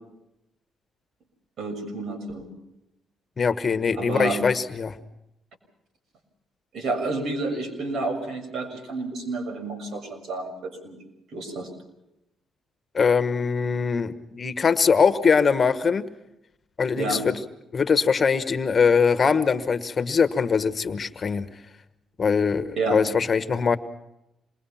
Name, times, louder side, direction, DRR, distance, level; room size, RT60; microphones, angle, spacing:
voice 1, 1.6-2.5 3.9-4.4 6.7-11.0 11.3-11.7 16.9-17.2 22.8-23.0, right 3 dB, 65° right, 5 dB, 6.8 m, -30 dB
voice 2, 3.4-5.0 12.9-16.0 16.8-17.3 17.7-21.5 22.2-23.8, left 5 dB, 40° left, 11 dB, 1.4 m, -22 dB
27.5 x 21.5 x 5.8 m, 0.86 s
cardioid pair, 90°, 0 cm